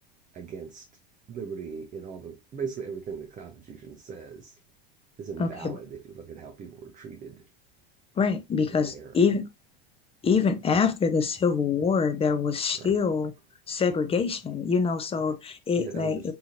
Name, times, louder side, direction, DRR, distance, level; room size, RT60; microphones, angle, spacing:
voice 1, 0.3-0.8 1.3-4.6 5.2-7.5 8.7-9.2 12.7-12.9 15.3-15.4 15.8-16.3, right 6 dB, 25° right, 0.6 m, -39 dB
voice 2, 5.4-5.7 8.2-9.4 10.2-13.3 13.7-16.3, left 5 dB, 20° left, 0.5 m, -25 dB
3.9 x 2.8 x 2.6 m
supercardioid pair, 110°, 31 cm